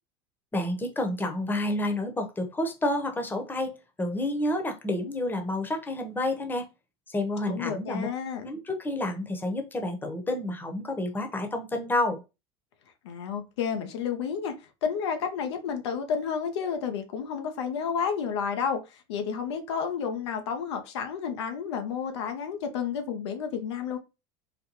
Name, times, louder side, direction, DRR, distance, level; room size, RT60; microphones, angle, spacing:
voice 1, 0.5-6.7 7.1-8.1 8.4-12.2, left 1 dB, 15° left, 0.9 m, -29 dB
voice 2, 7.5-8.5 13.0-24.0, left 7 dB, 85° left, 0.7 m, -31 dB
4.0 x 2.1 x 3.0 m
supercardioid pair, 100°, 14 cm